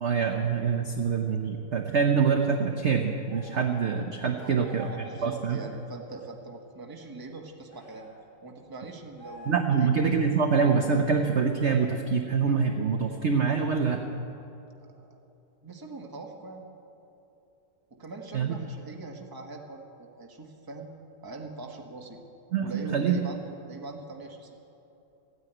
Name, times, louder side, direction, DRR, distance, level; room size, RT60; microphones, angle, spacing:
voice 1, 0.0-4.9 5.2-5.6 9.5-14.0 18.3-18.5 22.5-23.2, right 5 dB, 50° right, 4 dB, 0.9 m, -25 dB
sound 1, 3.3-3.8 4.6-5.2 7.7-8.2 9.2-9.9, right 1 dB, 70° left, 3.8 m, -46 dB
voice 2, 4.3-8.1 8.4-9.9 14.8-15.2 15.6-16.7 17.9-20.9 21.2-22.2 22.6-24.5, right 3 dB, 15° right, 2 dB, 1.0 m, -42 dB
14.5 x 9.6 x 9.1 m, 2.8 s
omnidirectional pair, 1.9 m